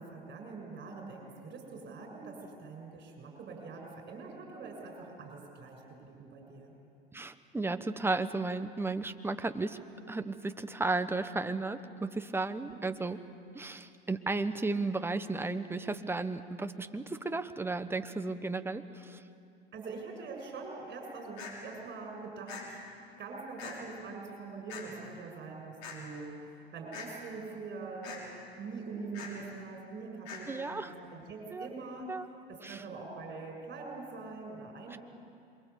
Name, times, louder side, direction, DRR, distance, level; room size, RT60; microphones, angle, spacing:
voice 1, 0.0-6.7 12.7-12.8 19.7-22.8 23.2-28.3 28.6-32.1 32.5-35.0, right 4 dB, 35° right, 2 dB, 6.7 m, -44 dB
voice 2, 7.1-9.8 10.1-13.2 13.5-19.2 30.5-30.9 31.5-31.7 32.1-32.2 32.6-32.8 34.9-35.0, right 3 dB, 5° right, 9 dB, 1.3 m, -34 dB
sound 1, 21.4-21.5 22.5-22.6 23.6-23.7 24.7-24.8 25.8-26.0 26.9-27.1 28.0-28.2 29.1-29.3 30.3-30.4, left 7 dB, 60° left, 6.4 m, -43 dB
27.5 x 23.0 x 8.4 m, 2.5 s
hypercardioid pair, 95°, 31 cm